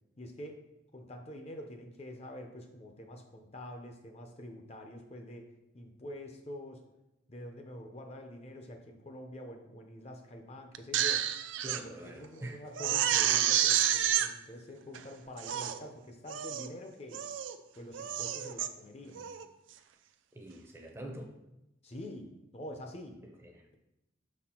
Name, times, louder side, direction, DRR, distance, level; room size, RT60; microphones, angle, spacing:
voice 1, 0.2-0.6 0.9-5.5 5.7-6.8 7.3-11.4 11.8-17.3 17.7-19.3 21.8-23.2, equal, 30° left, 4 dB, 0.6 m, -46 dB
Crying sobbing, 10.7-11.8 12.2-12.3 12.8-14.3 14.9-15.0 15.4-15.8 16.3-16.7 17.1-17.6 17.9-18.7 19.2-19.4, right 10 dB, 75° right, 0.4 m, -29 dB
voice 2, 11.6-12.6 20.3-21.3 23.2-23.6, right 1 dB, 15° right, 3 dB, 0.6 m, -45 dB
5.8 x 4.2 x 4.3 m, 0.90 s
head